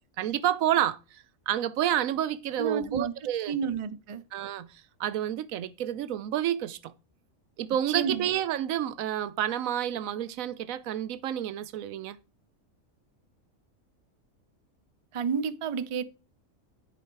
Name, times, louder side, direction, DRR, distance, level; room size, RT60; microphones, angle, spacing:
voice 1, 0.2-3.6 4.3-6.9 7.6-12.2, right 11 dB, 90° right, 1.1 m, -29 dB
voice 2, 2.6-3.1 3.5-4.2 7.9-8.3 15.1-16.0, right 6 dB, 45° right, 0.4 m, -30 dB
10.0 x 4.8 x 4.6 m
omnidirectional pair, 1.4 m